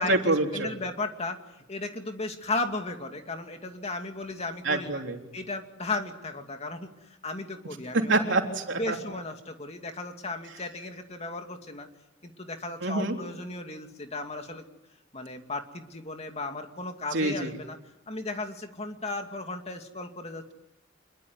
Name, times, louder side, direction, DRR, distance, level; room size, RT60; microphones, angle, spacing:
voice 1, 0.0-0.7 4.6-5.2 7.9-9.0 12.8-13.2 17.1-17.6, right 2 dB, 70° right, 3 dB, 3.7 m, -26 dB
voice 2, 0.5-1.4 1.7-5.0 5.3-6.9 7.2-8.4 8.8-11.9 12.2-14.6 15.1-17.8 18.1-20.4, left 2 dB, 35° left, 5 dB, 2.5 m, -35 dB
26.5 x 22.0 x 9.7 m, 0.93 s
head